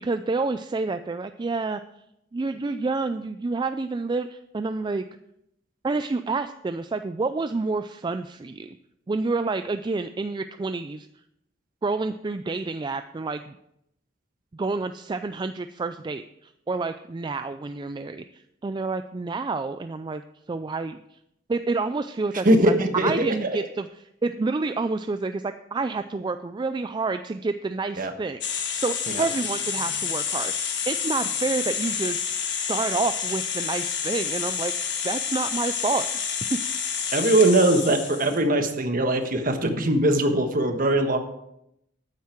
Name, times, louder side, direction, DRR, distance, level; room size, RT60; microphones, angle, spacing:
voice 1, 0.0-1.8 2.3-5.0 5.8-8.7 9.1-11.1 11.8-13.6 14.5-20.2 20.5-21.0 21.5-23.9 24.2-28.4 28.7-32.2 32.7-36.1 36.5-36.6, right 3 dB, 25° right, 10 dB, 0.3 m, -28 dB
voice 2, 22.4-23.6 28.0-28.1 29.1-29.3 37.1-41.2, right 1 dB, 45° right, 6 dB, 1.3 m, -21 dB
sound 1, 28.4-38.4, left 7 dB, 60° left, 1.6 m, -29 dB
12.0 x 9.4 x 4.5 m, 0.80 s
head